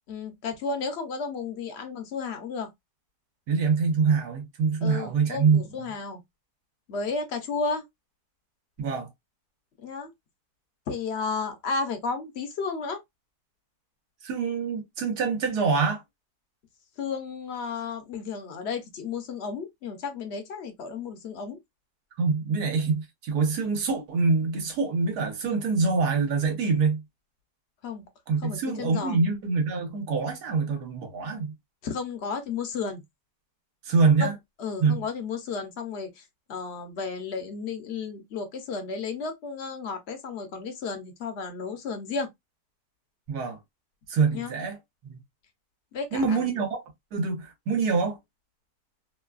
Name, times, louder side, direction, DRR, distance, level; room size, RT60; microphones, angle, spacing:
voice 1, 0.1-2.7 4.8-6.2 6.9-7.8 9.8-10.1 10.9-13.0 17.0-21.6 27.8-28.0 28.4-29.2 31.8-33.0 34.2-34.3 34.6-36.2 36.5-42.3 44.3-44.5 45.9-46.5, left 4 dB, 55° left, 0.8 m, -33 dB
voice 2, 3.5-5.9 8.8-9.1 14.2-16.0 22.2-27.0 28.3-31.5 33.8-34.3 34.8-35.0 43.3-43.6 44.1-44.8 45.0-45.2 46.1-46.8 47.1-48.2, right 4 dB, 90° right, 1.4 m, -25 dB
3.1 x 2.2 x 2.3 m
omnidirectional pair, 1.6 m